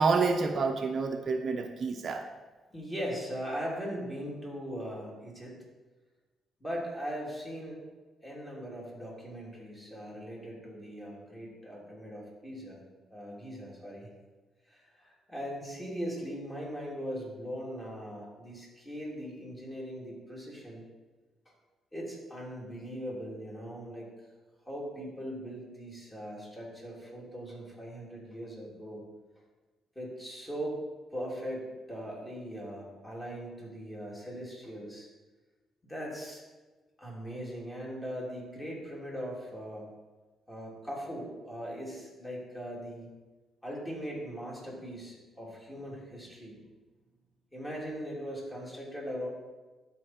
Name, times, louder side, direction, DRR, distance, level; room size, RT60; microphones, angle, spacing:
voice 1, 0.0-2.3, right 4 dB, 50° right, 5 dB, 0.6 m, -28 dB
voice 2, 2.7-5.6 6.6-7.8 8.2-12.8 13.1-14.1 14.7-20.8 21.9-24.1 24.6-29.0 29.9-30.8 31.1-35.1 35.8-36.4 37.0-39.9 40.5-43.1 43.6-46.6 47.5-49.3, equal, 15° left, -4 dB, 3.0 m, -40 dB
12.5 x 4.5 x 4.3 m, 1.2 s
cardioid pair, 90°, 0 cm